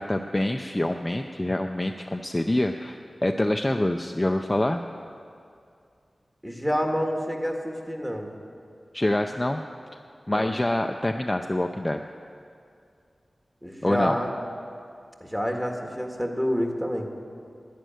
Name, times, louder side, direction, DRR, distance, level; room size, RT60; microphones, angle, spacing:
voice 1, 0.0-4.8 8.9-9.6 9.9-10.0 10.3-12.0 13.8-14.2, left 1 dB, 20° left, 4 dB, 0.5 m, -26 dB
voice 2, 6.4-8.3 10.3-10.5 13.6-14.3 15.2-17.1, equal, 5° right, 2 dB, 1.8 m, -28 dB
11.0 x 10.5 x 9.2 m, 2.4 s
wide cardioid pair, 75°, 0 cm